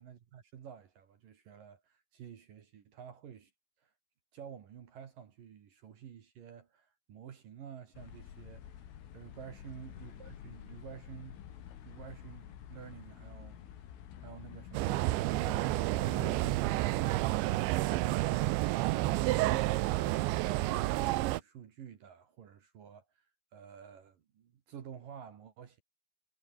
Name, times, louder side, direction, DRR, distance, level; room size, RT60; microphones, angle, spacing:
voice 1, 0.0-3.5 3.8-3.9 4.3-8.8 9.1-11.4 11.8-13.6 14.2-16.0 19.3-23.3 23.5-25.8, right 8 dB, 55° right, 3.1 m, -50 dB
sound 1, 7.9-17.2, left 10 dB, 85° left, 5.4 m, -49 dB
sound 2, 14.7-21.4, right 18 dB, 75° right, 3.1 m, -30 dB
omnidirectional pair, 5.6 m